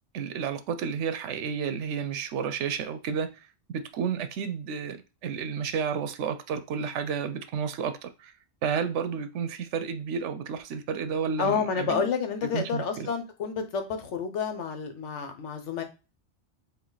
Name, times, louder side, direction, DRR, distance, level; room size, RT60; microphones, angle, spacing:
voice 1, 0.1-3.3 3.7-8.3 8.6-12.0 12.5-13.1, right 6 dB, 90° right, 0.9 m, -31 dB
voice 2, 11.4-15.8, left 6 dB, 85° left, 1.1 m, -29 dB
4.5 x 2.5 x 3.9 m
omnidirectional pair, 1.2 m